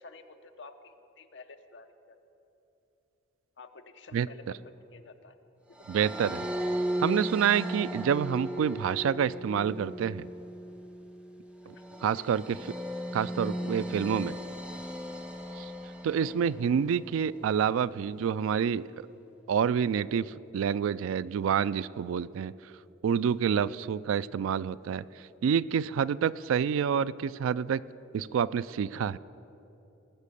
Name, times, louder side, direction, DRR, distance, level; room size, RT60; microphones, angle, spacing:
voice 1, 0.0-2.2 3.6-4.4 4.9-5.4 5.9-6.0 11.7-12.2, left 3 dB, 60° left, 7 dB, 0.8 m, -51 dB
sound 1, 5.8-17.1, equal, 5° right, 0.7 m, -36 dB
voice 2, 5.9-6.4 7.0-10.3 12.0-12.6 13.1-14.3 15.6-15.7 16.0-18.8 19.5-22.5 23.0-25.0 25.4-27.8 28.1-29.2, right 7 dB, 85° right, 18 dB, 0.3 m, -28 dB
18.5 x 6.5 x 8.3 m, 3.0 s
head